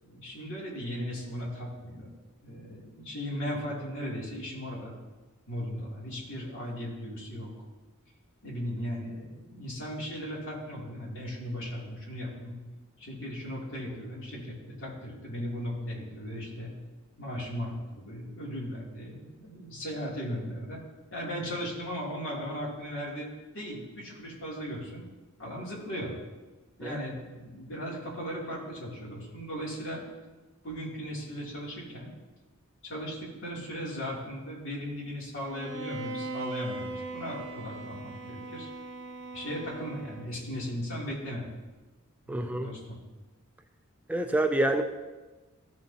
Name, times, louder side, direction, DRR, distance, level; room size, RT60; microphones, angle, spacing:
voice 1, 0.0-2.1 2.4-5.0 5.5-7.5 8.4-12.6 13.0-16.7 17.2-20.8 21.1-23.3 23.5-25.0 25.4-26.1 26.8-30.0 30.6-32.1 32.8-38.7 39.3-41.5 42.2-43.0, equal, 65° left, -4 dB, 2.8 m, -37 dB
Bowed string instrument, 35.4-40.6, right 2 dB, 60° right, 0.7 m, -40 dB
voice 2, 42.3-42.7 44.1-44.8, right 2 dB, 5° right, 6 dB, 0.3 m, -27 dB
14.0 x 6.6 x 2.8 m, 1.2 s
head